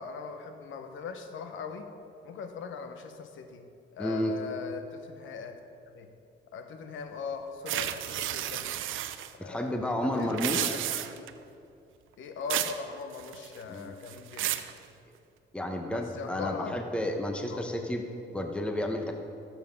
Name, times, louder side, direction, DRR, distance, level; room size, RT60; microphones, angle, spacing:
voice 1, 0.0-1.9 2.2-3.6 3.9-5.6 5.9-6.1 6.5-8.7 9.4-11.3 12.2-14.6 15.9-16.8 17.5-17.7, left 5 dB, 75° left, 6 dB, 1.2 m, -40 dB
voice 2, 4.0-4.3 9.4-10.7 13.7-14.0 15.5-19.1, left 1 dB, 5° left, 3 dB, 1.0 m, -31 dB
sound 1, 7.7-9.3 10.2-11.3 12.5-12.8 13.1-13.6 14.1-14.7, right 12 dB, 80° right, 0.6 m, -32 dB
14.0 x 7.6 x 5.3 m, 2.6 s
cardioid pair, 90°, 20 cm